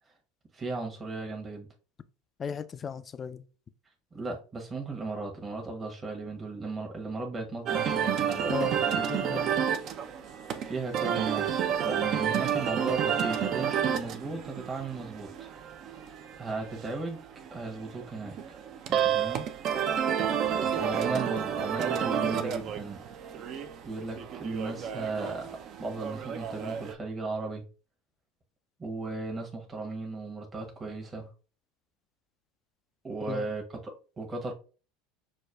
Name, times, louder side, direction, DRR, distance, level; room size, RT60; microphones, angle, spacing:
voice 1, 0.5-1.7 4.1-9.0 10.6-15.5 16.4-17.2 17.5-18.6 18.9-19.5 20.8-23.0 23.8-25.5 25.8-27.6 28.8-31.3 33.0-34.5, right 3 dB, 25° right, 0.9 m, -36 dB
voice 2, 2.4-3.4 8.5-8.8 9.1-9.5 33.3-33.5, left 6 dB, 30° left, 0.3 m, -35 dB
sound 1, 7.7-26.9, right 8 dB, 50° right, 0.5 m, -30 dB
6.1 x 2.2 x 2.3 m
hypercardioid pair, 85°, 0 cm